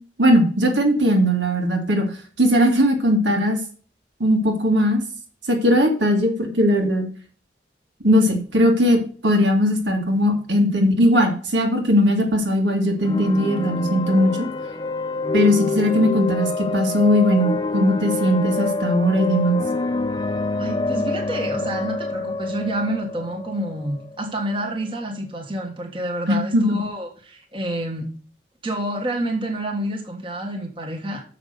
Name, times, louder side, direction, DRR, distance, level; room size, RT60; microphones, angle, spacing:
voice 1, 0.2-2.0 2.4-3.6 4.2-5.0 5.5-7.1 8.0-14.3 15.3-19.6 26.3-26.8, equal, 80° right, 3 dB, 2.2 m, -19 dB
sound 1, 13.0-24.7, left 3 dB, 25° left, 0.5 m, -26 dB
voice 2, 20.6-28.1 28.6-31.2, right 1 dB, 30° right, 1 dB, 1.5 m, -28 dB
6.8 x 5.9 x 6.6 m, 0.42 s
head